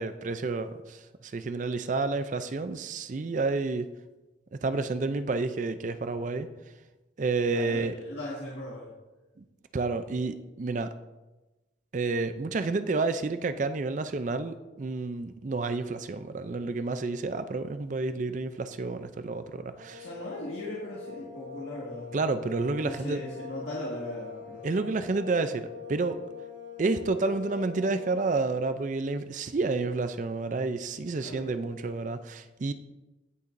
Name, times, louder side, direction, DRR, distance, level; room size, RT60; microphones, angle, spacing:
voice 1, 0.0-3.9 4.6-6.5 7.2-7.9 9.4-9.5 9.7-10.9 11.9-20.1 22.1-23.2 24.6-26.2 26.8-32.7, right 3 dB, 40° right, 11 dB, 0.4 m, -30 dB
voice 2, 7.5-8.9 20.0-22.1 22.8-24.7 31.2-31.7, left 1 dB, 80° left, -6 dB, 1.9 m, -38 dB
sound 1, 19.7-28.4, left 6 dB, 80° right, 2.1 m, -44 dB
16.0 x 6.8 x 2.6 m, 1.1 s
head